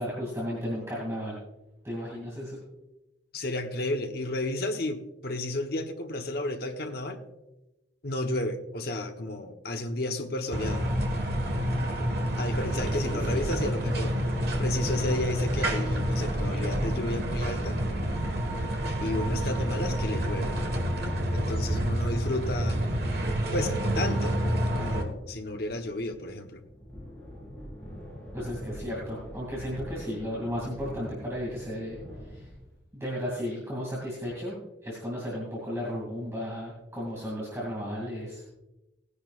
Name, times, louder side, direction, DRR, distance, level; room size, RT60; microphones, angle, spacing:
voice 1, 0.0-1.4 1.8-2.6 12.6-13.4 28.3-32.5 32.9-38.5, equal, 15° right, -5 dB, 2.5 m, -34 dB
voice 2, 3.3-7.2 8.0-10.9 12.4-14.2 14.6-17.8 19.0-20.6 21.3-22.8 23.5-24.4 24.7-26.6, left 1 dB, 55° left, 5 dB, 1.0 m, -32 dB
sound 1, 10.5-25.0, equal, 55° right, 1.6 m, -28 dB
sound 2, 24.4-32.8, equal, 5° left, 4.0 m, -45 dB
18.5 x 10.0 x 2.4 m, 0.98 s
head